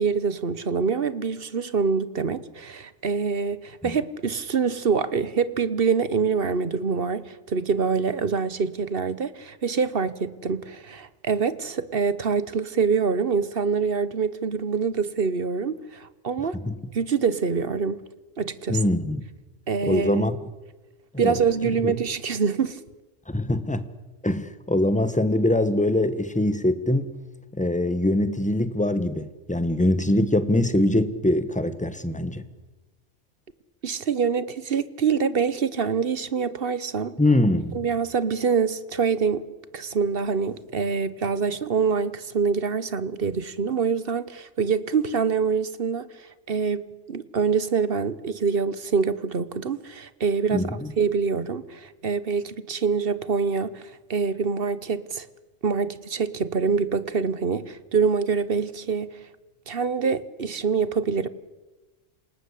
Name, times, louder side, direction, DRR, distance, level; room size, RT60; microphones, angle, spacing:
voice 1, 0.0-16.6 16.9-18.0 18.4-18.8 19.7-20.2 21.2-22.8 33.8-37.2 37.7-39.4 39.7-53.8 54.1-55.3 55.6-59.1 59.7-61.3, right 5 dB, 50° right, 1.2 m, -25 dB
voice 2, 18.7-19.2 19.8-20.4 21.1-21.4 21.8-21.9 23.3-23.9 24.2-27.1 27.5-32.4 37.2-37.8 50.5-50.9, left 1 dB, 5° left, 1.2 m, -23 dB
27.5 x 18.5 x 8.4 m
omnidirectional pair, 1.2 m